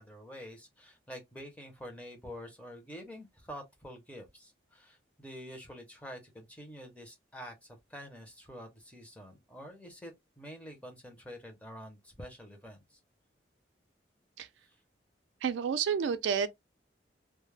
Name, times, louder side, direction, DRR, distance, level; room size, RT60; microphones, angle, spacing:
voice 1, 0.0-13.0, equal, 10° left, 0.6 m, -47 dB
voice 2, 15.4-16.5, right 7 dB, 85° right, 0.3 m, -30 dB
2.2 x 2.0 x 3.1 m
head